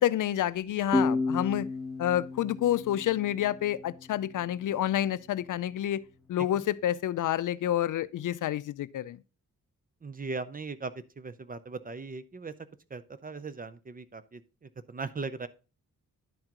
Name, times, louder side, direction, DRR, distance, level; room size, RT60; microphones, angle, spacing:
voice 1, 0.0-1.7 2.0-6.0 6.3-9.2, left 12 dB, 65° left, 0.5 m, -28 dB
sound 1, 0.9-4.3, left 2 dB, ahead, 1.2 m, -32 dB
voice 2, 10.0-12.5 12.9-15.5, right 4 dB, 25° right, 0.5 m, -39 dB
10.5 x 4.5 x 3.7 m
cardioid pair, 105°, 33 cm